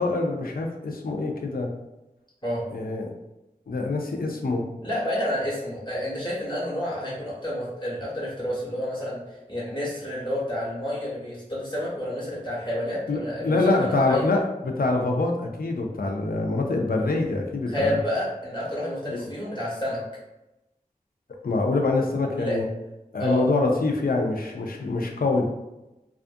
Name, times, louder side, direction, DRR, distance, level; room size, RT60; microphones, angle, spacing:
voice 1, 0.0-1.7 2.7-3.1 3.7-4.7 13.1-18.0 19.1-19.3 21.4-22.7 23.1-25.5, left 3 dB, 85° left, 2 dB, 0.4 m, -25 dB
voice 2, 4.8-14.3 17.7-20.0 22.4-22.6 23.2-23.4, left 1 dB, 30° left, -8 dB, 1.1 m, -29 dB
2.4 x 2.3 x 2.5 m, 0.95 s
wide cardioid pair, 50°, 15 cm